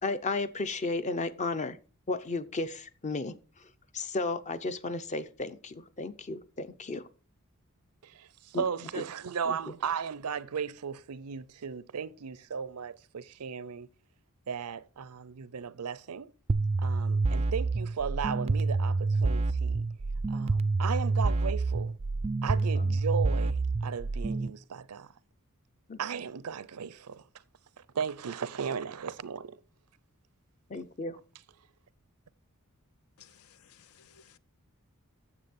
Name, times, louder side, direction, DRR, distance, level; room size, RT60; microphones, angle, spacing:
voice 1, 0.0-1.8 2.1-3.4 3.9-7.1 8.5-8.6 9.4-9.6 22.6-22.9 25.9-26.0 30.7-31.2, left 3 dB, 30° left, 0.6 m, -34 dB
voice 2, 8.0-13.9 14.5-16.3 16.8-19.9 20.3-21.9 22.4-25.1 26.0-27.2 27.9-29.6, right 6 dB, 85° right, 0.6 m, -36 dB
sound 1, 16.5-24.5, right 3 dB, 25° right, 0.4 m, -28 dB
voice 3, 33.2-34.4, left 8 dB, 70° left, 0.5 m, -58 dB
9.8 x 7.4 x 4.3 m
head